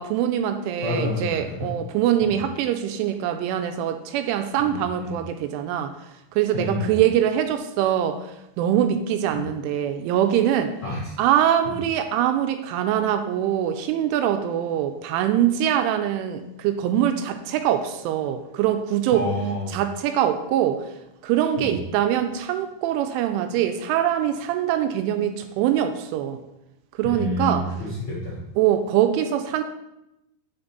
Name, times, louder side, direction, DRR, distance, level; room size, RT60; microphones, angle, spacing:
voice 1, 0.0-5.9 6.3-10.7 11.2-19.3 19.7-20.9 21.2-26.4 27.0-27.7 28.6-29.6, right 10 dB, 85° right, 8 dB, 2.9 m, -23 dB
voice 2, 0.8-1.7 2.2-2.4 4.6-5.2 6.5-7.0 9.3-9.4 10.8-11.1 11.6-11.7 19.1-19.8 21.6-21.8 27.0-28.4, left 1 dB, 80° left, -6 dB, 1.2 m, -29 dB
7.9 x 6.1 x 3.9 m, 0.89 s
omnidirectional pair, 5.6 m